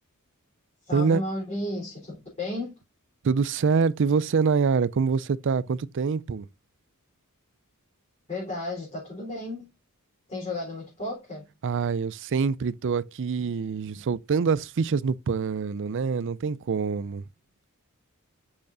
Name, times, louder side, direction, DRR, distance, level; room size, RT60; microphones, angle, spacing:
voice 1, 0.8-2.8 8.3-9.7 10.3-11.5, left 1 dB, 30° left, 3.5 m, -33 dB
voice 2, 3.2-6.5 11.6-17.2, right 5 dB, 55° right, 0.4 m, -25 dB
8.6 x 5.7 x 2.6 m
head